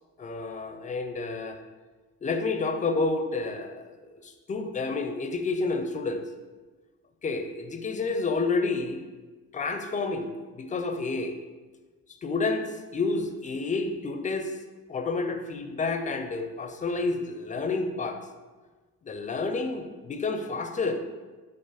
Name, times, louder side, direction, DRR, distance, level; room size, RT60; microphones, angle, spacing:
voice 1, 0.2-1.6 2.2-6.2 7.2-9.0 9.5-11.3 12.2-14.5 14.9-18.2 19.0-21.1, left 3 dB, 25° left, 6 dB, 0.4 m, -30 dB
4.6 x 2.4 x 4.1 m, 1.3 s
cardioid pair, 90°, 30 cm